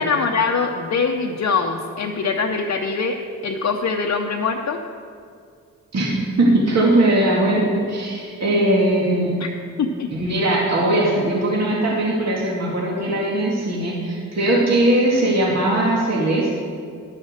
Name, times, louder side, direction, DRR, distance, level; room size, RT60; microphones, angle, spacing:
voice 1, 0.0-3.2 3.4-4.8 9.4-9.5 9.8-10.1, left 5 dB, 55° left, 1 dB, 0.8 m, -23 dB
voice 2, 5.9-9.3 10.1-16.6, right 1 dB, 55° right, -4 dB, 2.2 m, -19 dB
11.5 x 6.4 x 6.5 m, 2.2 s
cardioid pair, 70°, 33 cm